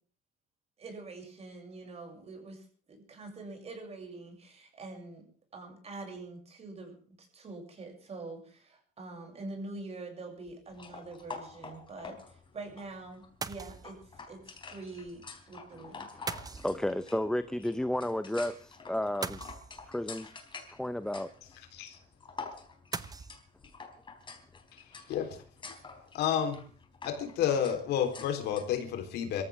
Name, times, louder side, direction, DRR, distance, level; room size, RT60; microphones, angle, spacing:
voice 1, 0.8-16.2, right 3 dB, 40° right, 7.1 m, -45 dB
sound 1, 10.5-10.7 13.4-14.1 16.3-17.2 19.2-20.1 22.9-23.4, right 4 dB, 20° right, 0.9 m, -40 dB
sound 2, 10.7-28.8, left 4 dB, 30° left, 3.9 m, -48 dB
voice 2, 16.0-19.4 19.9-20.3 20.7-21.3, left 1 dB, 5° left, 0.8 m, -33 dB
voice 3, 25.1-25.4 26.1-26.6 27.0-29.4, left 9 dB, 80° left, 3.9 m, -30 dB
25.0 x 14.5 x 3.6 m
cardioid pair, 110°, 17 cm